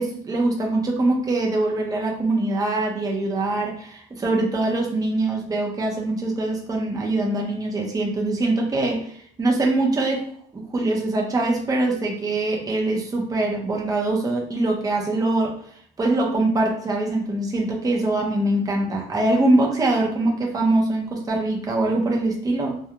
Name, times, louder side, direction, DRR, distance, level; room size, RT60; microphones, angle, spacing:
voice 1, 0.0-10.2 10.5-15.6 16.0-22.8, right 2 dB, 20° right, -1 dB, 0.6 m, -23 dB
2.3 x 2.3 x 2.8 m, 0.62 s
cardioid pair, 110°, 17 cm